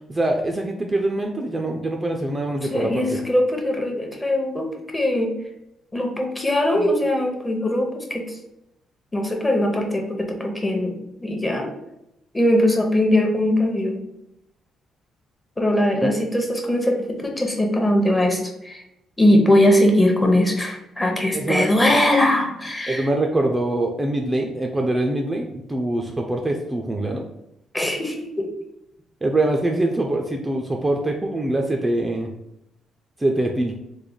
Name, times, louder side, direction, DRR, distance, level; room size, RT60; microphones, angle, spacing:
voice 1, 0.1-3.2 16.0-16.1 21.3-21.7 22.9-27.2 29.2-32.3 33.2-33.7, right 1 dB, 20° right, 2 dB, 0.4 m, -24 dB
voice 2, 2.7-5.3 5.9-8.2 9.1-10.9 11.2-11.7 12.3-14.0 15.6-18.8 19.2-23.1 27.7-28.5, left 1 dB, 15° left, 2 dB, 0.8 m, -20 dB
3.2 x 2.2 x 3.8 m, 0.83 s
cardioid pair, 90°, 0 cm